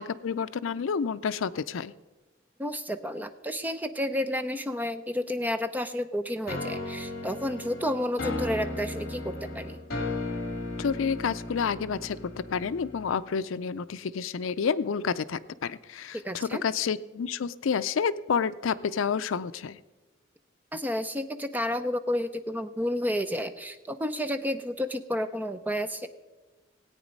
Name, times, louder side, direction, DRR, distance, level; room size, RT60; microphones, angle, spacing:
voice 1, 0.0-1.9 10.8-19.8, left 6 dB, 75° left, 15 dB, 0.4 m, -29 dB
voice 2, 2.6-9.8 16.2-16.6 20.7-26.1, left 1 dB, 10° right, 10 dB, 0.5 m, -31 dB
sound 1, 6.5-13.3, left 2 dB, 50° left, 2.3 m, -35 dB
17.5 x 8.8 x 5.2 m, 1.2 s
head